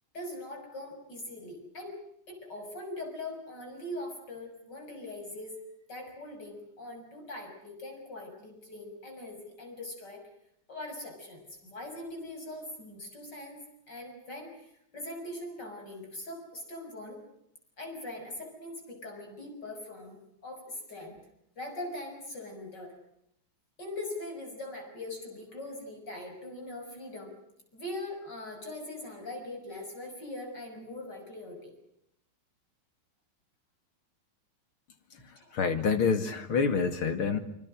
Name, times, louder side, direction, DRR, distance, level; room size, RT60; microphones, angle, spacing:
voice 1, 0.1-1.9 2.3-5.6 5.9-10.2 10.7-17.2 17.8-20.2 20.4-21.2 21.6-22.9 23.8-27.3 27.7-31.7 35.3-35.6, left 1 dB, 55° left, 3 dB, 7.1 m, -41 dB
voice 2, 35.1-37.4, left 5 dB, 85° left, 8 dB, 3.1 m, -28 dB
26.5 x 25.0 x 6.3 m, 0.76 s
omnidirectional pair, 2.3 m